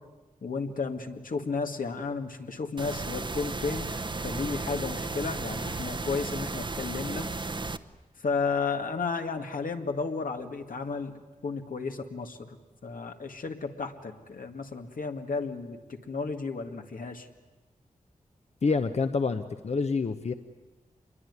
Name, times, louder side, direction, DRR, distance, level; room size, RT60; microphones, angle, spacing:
voice 1, 0.4-7.3 8.2-11.1 11.4-12.6 12.8-17.3, left 4 dB, 85° left, 5 dB, 2.0 m, -33 dB
sound 1, 2.8-7.8, right 3 dB, 35° right, 0.8 m, -34 dB
voice 2, 18.6-20.3, left 4 dB, 55° left, 9 dB, 0.9 m, -27 dB
26.5 x 22.0 x 9.7 m, 1.1 s
wide cardioid pair, 120°, 14 cm